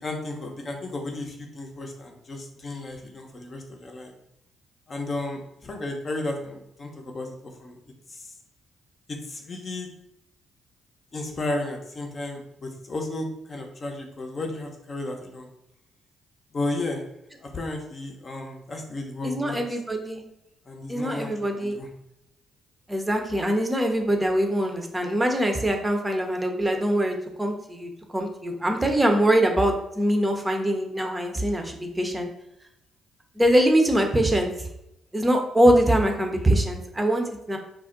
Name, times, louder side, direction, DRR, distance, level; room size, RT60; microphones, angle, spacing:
voice 1, 0.0-4.1 4.9-7.8 8.1-8.3 9.1-9.9 11.1-15.5 16.5-17.0 17.4-19.6 20.7-21.9, left 2 dB, 40° left, 2 dB, 0.7 m, -33 dB
voice 2, 19.2-20.2 20.9-21.8 22.9-32.3 33.4-34.7 35.1-37.6, right 1 dB, 15° right, 3 dB, 0.7 m, -23 dB
2.4 x 2.1 x 3.7 m, 0.82 s
hypercardioid pair, 45°, 0 cm